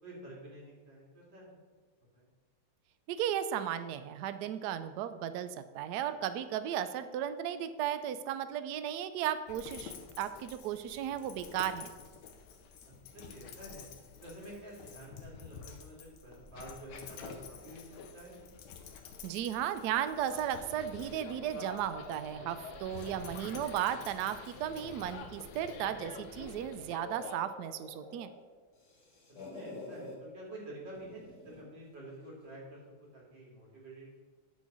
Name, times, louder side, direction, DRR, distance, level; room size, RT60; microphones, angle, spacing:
voice 1, 0.0-1.6 2.1-2.3 12.8-13.9 14.2-18.4 23.0-23.4 29.5-34.1, right 1 dB, 60° right, -4 dB, 3.0 m, -49 dB
voice 2, 3.1-11.9 19.2-28.3, right 10 dB, 90° right, 11 dB, 0.8 m, -35 dB
Dog, 9.5-26.7, left 6 dB, 65° left, 1.2 m, -50 dB
sound 1, 20.3-27.4, left 4 dB, 90° left, 1.7 m, -48 dB
sound 2, 24.5-26.3 26.7-28.4 28.7-30.2 30.9-31.7, left 2 dB, 40° left, 3.1 m, -49 dB
9.8 x 4.0 x 6.1 m, 1.4 s
omnidirectional pair, 2.3 m